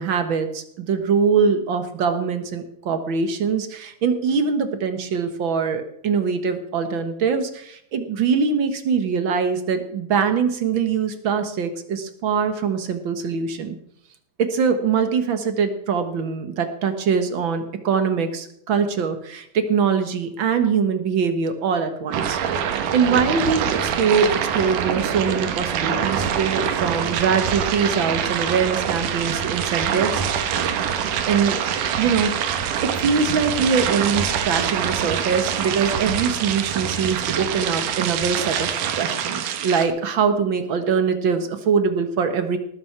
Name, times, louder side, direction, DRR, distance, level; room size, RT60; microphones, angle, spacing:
voice 1, 0.0-13.8 14.4-30.2 31.3-31.6 32.0-42.6, right 6 dB, 50° right, 8 dB, 1.6 m, -23 dB
sound 1, 22.1-39.9, right 8 dB, 90° right, 2.6 m, -25 dB
19.0 x 7.6 x 6.0 m, 0.71 s
omnidirectional pair, 3.6 m